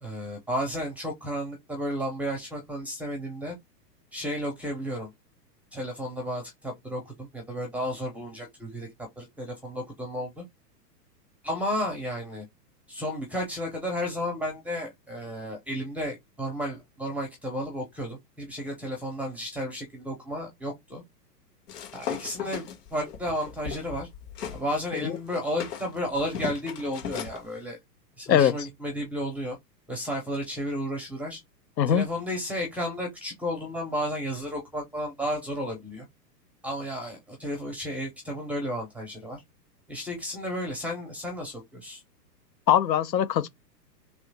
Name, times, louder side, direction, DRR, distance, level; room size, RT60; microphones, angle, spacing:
voice 1, 0.0-3.5 4.1-5.1 5.7-8.9 9.2-10.4 11.4-12.4 12.9-21.0 21.9-24.1 24.5-27.8 28.2-29.6 29.9-31.4 31.9-36.1 36.6-39.4 39.9-42.0, equal, 5° right, 0.4 m, -33 dB
sound 1, 21.7-24.6 25.0-27.4, left 8 dB, 65° left, 1.6 m, -37 dB
voice 2, 42.7-43.5, left 9 dB, 85° left, 0.8 m, -21 dB
3.1 x 3.0 x 3.2 m
hypercardioid pair, 125°, 49 cm